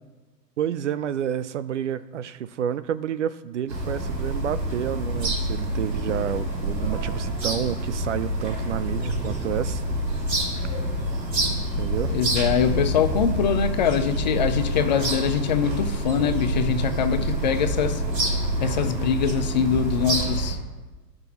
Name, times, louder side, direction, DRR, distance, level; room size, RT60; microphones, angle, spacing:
voice 1, 0.6-9.8 11.8-12.1, right 10 dB, 50° right, 14 dB, 0.5 m, -29 dB
sound 1, 3.7-20.5, right 1 dB, 85° right, 2.4 m, -27 dB
voice 2, 12.1-18.0 18.6-20.6, left 8 dB, 30° left, 10 dB, 0.5 m, -23 dB
16.5 x 6.0 x 3.0 m, 1.2 s
figure-of-eight pair, 115°, 49 cm